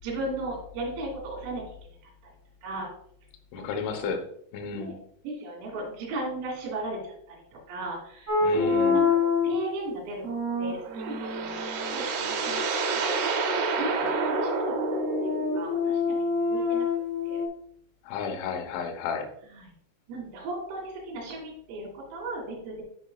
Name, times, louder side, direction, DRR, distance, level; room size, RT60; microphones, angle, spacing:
voice 1, 0.0-1.8 2.0-2.3 2.6-2.9 3.6-4.1 4.7-5.0 5.2-10.2 10.6-11.7 11.9-12.6 13.1-13.3 13.8-16.2 16.5-16.9 17.3-17.4 19.5-19.7 20.1-22.8, right 2 dB, 85° right, -3 dB, 5.5 m, -36 dB
voice 2, 3.5-4.2 4.5-5.0 8.4-9.0 18.0-19.3, left 5 dB, 75° left, 6 dB, 3.2 m, -32 dB
sound 1, 8.3-9.7 10.2-12.0 14.1-17.5, left 4 dB, 35° right, 1.4 m, -27 dB
sound 2, 10.6-15.8, right 4 dB, 70° right, 2.5 m, -29 dB
13.0 x 5.3 x 2.3 m, 0.67 s
omnidirectional pair, 5.8 m